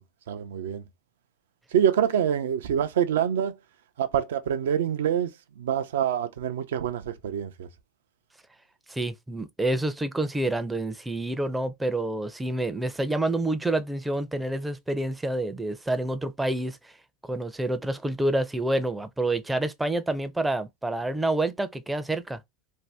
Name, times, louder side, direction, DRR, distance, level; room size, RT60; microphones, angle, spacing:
voice 1, 0.3-0.8 1.7-3.5 4.0-7.7, right 9 dB, 75° right, 0.5 m, -26 dB
voice 2, 8.9-16.8 17.3-22.4, right 1 dB, 10° right, 0.4 m, -28 dB
2.6 x 2.2 x 3.3 m
hypercardioid pair, 100°, 0 cm